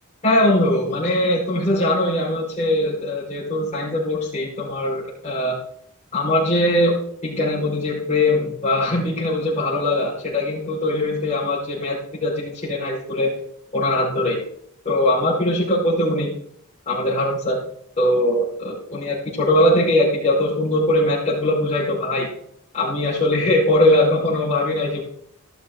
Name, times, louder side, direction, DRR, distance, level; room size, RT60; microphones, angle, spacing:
voice 1, 0.2-5.6 6.1-7.0 7.2-13.3 13.7-14.4 14.8-16.4 16.8-17.6 18.0-22.3 22.7-25.0, left 1 dB, 30° left, -9 dB, 5.1 m, -21 dB
14.5 x 12.5 x 3.9 m, 0.66 s
head